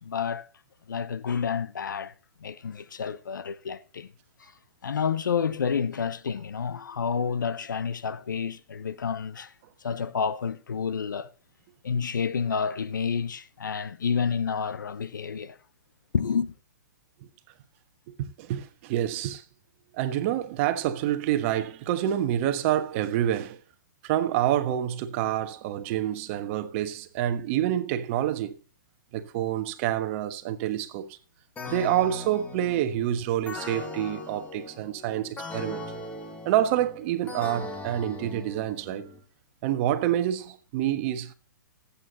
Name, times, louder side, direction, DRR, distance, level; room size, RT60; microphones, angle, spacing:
voice 1, 0.0-0.5 0.9-2.1 2.4-4.1 4.4-4.5 4.8-9.5 9.8-11.3 11.8-15.6 16.1-16.5, left 6 dB, 80° left, 0.9 m, -29 dB
voice 2, 18.4-19.4 19.9-23.6 24.0-28.5 29.1-31.1 31.7-35.8 36.4-39.1 39.6-41.3, right 12 dB, 40° right, 1.3 m, -27 dB
sound 1, 31.6-39.2, left 2 dB, 15° left, 1.7 m, -39 dB
18.5 x 8.5 x 2.9 m
hypercardioid pair, 130°, 10 cm